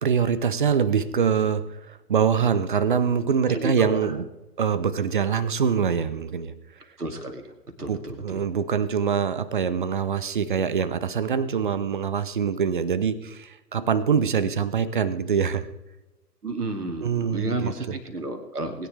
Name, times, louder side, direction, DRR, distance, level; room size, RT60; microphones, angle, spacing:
voice 1, 0.0-4.2 4.6-6.5 7.9-15.7 17.0-17.7, right 7 dB, 30° right, 16 dB, 0.7 m, -24 dB
voice 2, 3.5-4.1 7.0-8.4 16.4-18.9, right 2 dB, 70° right, 5 dB, 2.5 m, -32 dB
21.0 x 9.8 x 3.4 m, 1.0 s
figure-of-eight pair, 130°, 48 cm